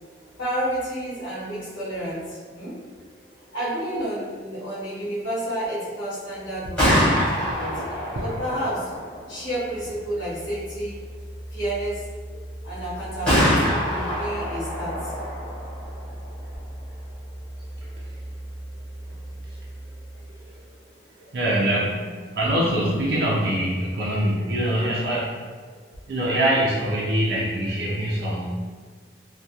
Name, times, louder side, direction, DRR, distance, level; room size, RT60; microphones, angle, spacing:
voice 1, 0.4-2.8 3.5-7.7 8.2-8.9 9.3-11.0 11.5-12.0 12.6-15.1, right 1 dB, 85° left, -10 dB, 1.0 m, -30 dB
Gunshot gunfire, 6.5-20.3, equal, 5° left, 1.0 m, -28 dB
voice 2, 7.4-7.8 8.1-8.2 19.5-19.6 20.4-20.5 21.2-25.4 26.1-28.6, right 1 dB, 60° right, -5 dB, 0.4 m, -24 dB
2.3 x 2.2 x 2.7 m, 1.5 s
head